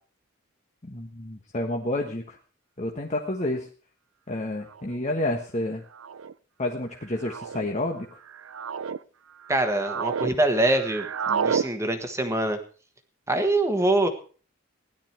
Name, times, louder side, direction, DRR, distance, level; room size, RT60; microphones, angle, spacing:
voice 1, 0.8-2.4 2.8-3.7 4.3-5.8 6.6-8.2, left 1 dB, 35° left, 1 dB, 1.3 m, -29 dB
sound 1, 3.6-3.7 4.7-5.0 5.9-6.3 7.2-7.7 8.3-9.0 9.4-10.3 10.6-11.7, right 6 dB, 85° right, 0.5 m, -30 dB
voice 2, 9.5-12.6 13.3-14.1, right 2 dB, 15° right, 6 dB, 1.4 m, -24 dB
16.5 x 11.5 x 4.5 m, 0.40 s
head